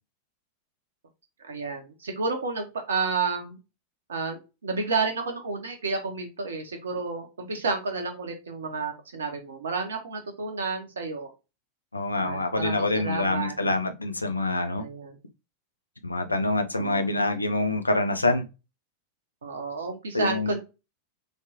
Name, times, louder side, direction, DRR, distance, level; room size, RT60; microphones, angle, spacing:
voice 1, 1.4-3.6 4.1-11.3 12.1-13.6 14.8-15.2 16.7-17.1 19.4-20.6, right 4 dB, 65° right, 0.8 m, -31 dB
voice 2, 11.9-14.8 16.0-18.4 20.1-20.6, left 2 dB, 80° left, 0.5 m, -26 dB
3.3 x 3.2 x 2.7 m
figure-of-eight pair, 90°, 0 cm